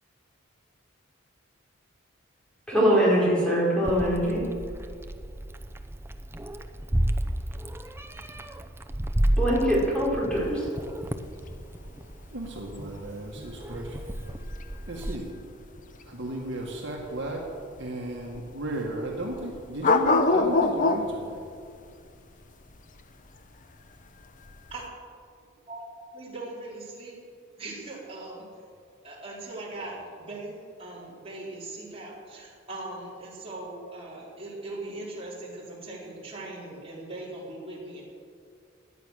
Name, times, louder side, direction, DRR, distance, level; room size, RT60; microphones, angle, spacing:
voice 1, 2.7-4.4 9.4-10.8, equal, 5° left, -5 dB, 4.6 m, -23 dB
Meow, 3.8-15.1, right 1 dB, 10° right, 0.6 m, -32 dB
sound 1, 10.3-24.9, left 3 dB, 40° left, 0.8 m, -28 dB
voice 2, 12.3-14.0 14.9-15.3 16.1-17.4 17.8-21.4, right 1 dB, 60° right, -2 dB, 2.0 m, -35 dB
voice 3, 26.1-27.2 27.6-28.5 29.0-38.0, right 2 dB, 30° right, -5 dB, 4.4 m, -40 dB
17.5 x 11.0 x 6.6 m, 2.3 s
head